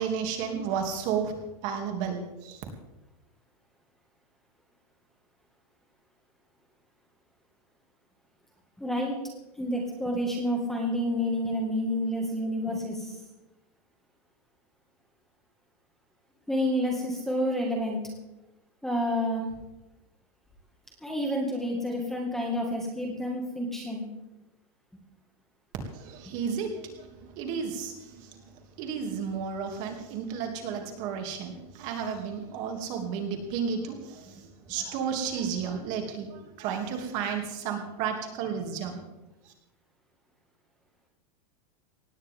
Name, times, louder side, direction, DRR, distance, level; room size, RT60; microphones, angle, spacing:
voice 1, 0.0-1.3 1.6-2.6 25.8-27.0 27.3-27.9 28.8-34.3 34.7-39.0, right 6 dB, 40° right, 3 dB, 2.8 m, -32 dB
voice 2, 8.8-9.2 9.6-13.2 16.5-18.0 18.8-19.4 21.0-24.1, equal, ahead, 0 dB, 2.0 m, -29 dB
19.0 x 16.0 x 3.7 m, 0.98 s
supercardioid pair, 170°, 20 cm